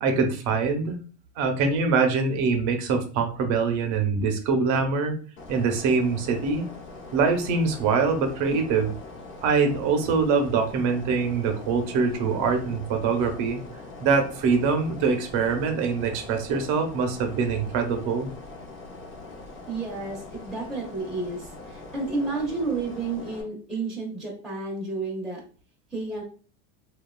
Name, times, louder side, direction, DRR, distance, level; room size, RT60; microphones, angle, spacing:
voice 1, 0.0-1.0 1.4-5.2 5.5-6.7 7.1-8.9 9.4-13.6 14.0-18.3, right 5 dB, 55° right, 5 dB, 0.7 m, -24 dB
sound 1, 5.4-23.4, left 3 dB, 35° left, 0.6 m, -42 dB
voice 2, 19.7-25.4 25.9-26.2, right 3 dB, ahead, -5 dB, 0.6 m, -31 dB
2.8 x 2.3 x 2.2 m, 0.39 s
supercardioid pair, 140°, 35 cm